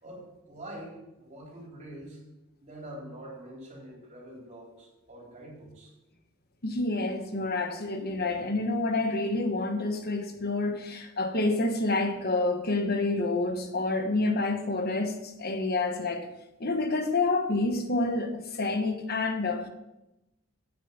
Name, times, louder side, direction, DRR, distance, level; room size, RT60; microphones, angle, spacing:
voice 1, 0.0-2.2 2.6-5.9 8.2-8.3, right 1 dB, 35° right, 3.8 m, -45 dB
voice 2, 6.6-16.3 16.6-19.7, left 2 dB, 45° left, 1.3 m, -28 dB
9.1 x 7.4 x 7.3 m
head